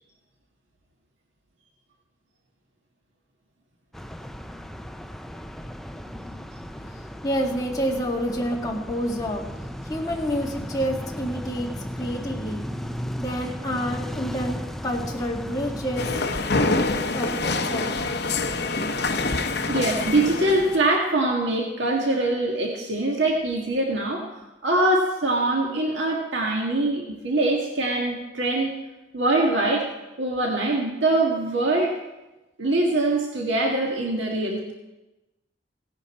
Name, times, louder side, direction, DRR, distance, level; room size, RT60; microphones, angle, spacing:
sound 1, 3.9-16.2, equal, ahead, 0.4 m, -35 dB
voice 1, 7.2-9.4 9.9-11.7 12.0-12.6 13.2-16.2 16.8-18.0, equal, 20° left, -2 dB, 2.0 m, -28 dB
sound 2, 16.0-20.9, left 3 dB, 60° left, 0.8 m, -26 dB
voice 2, 19.7-24.3 24.6-28.7 29.1-29.9 30.2-31.9 32.6-34.7, right 2 dB, 80° right, -1 dB, 1.7 m, -23 dB
17.0 x 10.5 x 4.3 m, 1.0 s
head